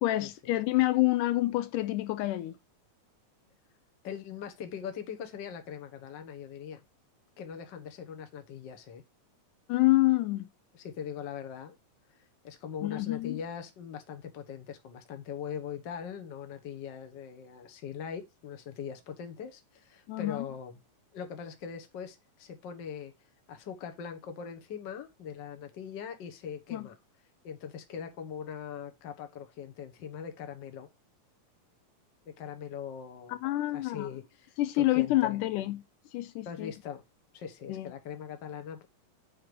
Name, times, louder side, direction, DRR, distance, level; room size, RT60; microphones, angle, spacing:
voice 1, 0.0-2.5 9.7-10.5 12.8-13.4 20.1-20.5 26.7-26.9 33.3-34.1 34.6-35.8 36.1-36.7 37.7-37.9, left 17 dB, 80° left, 2.1 m, -27 dB
voice 2, 4.0-6.8 7.4-9.0 10.7-11.8 12.1-20.8 21.1-23.1 23.5-27.0 27.4-30.9 32.2-33.4 33.7-35.4 36.4-37.0 37.3-38.9, left 7 dB, 50° left, 1.4 m, -41 dB
7.9 x 4.5 x 5.0 m
omnidirectional pair, 3.7 m